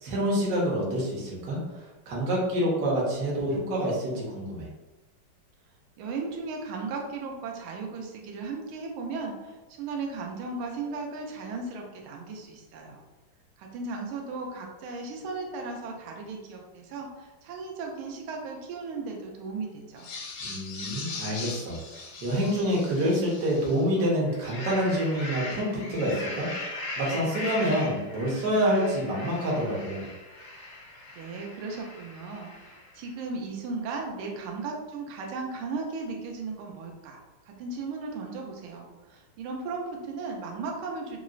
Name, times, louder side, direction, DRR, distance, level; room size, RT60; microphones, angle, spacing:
voice 1, 0.0-4.7 20.4-21.8 22.2-30.1, equal, 60° right, -4 dB, 1.1 m, -27 dB
voice 2, 6.0-13.0 13.6-20.1 31.1-37.2 37.4-41.2, right 4 dB, 80° right, 1 dB, 1.4 m, -36 dB
sound 1, 20.0-23.9 24.3-33.0, left 2 dB, 80° left, 1.4 m, -39 dB
3.7 x 2.0 x 2.4 m, 1.1 s
omnidirectional pair, 2.3 m